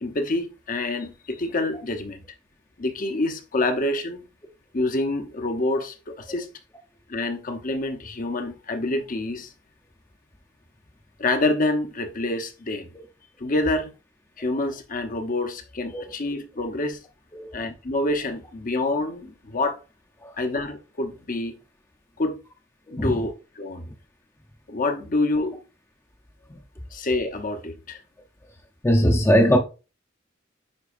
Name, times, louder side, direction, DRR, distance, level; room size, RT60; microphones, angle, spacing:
voice 1, 0.0-2.2 2.8-4.3 4.7-6.5 7.1-9.5 11.2-12.9 13.4-13.9 14.4-17.0 17.5-19.8 20.4-21.6 22.2-22.4 22.9-23.9 24.7-25.6 26.9-28.0, left 2 dB, 45° left, 0.8 m, -27 dB
voice 2, 28.8-29.6, equal, 15° left, 0.7 m, -20 dB
9.7 x 4.0 x 2.5 m
head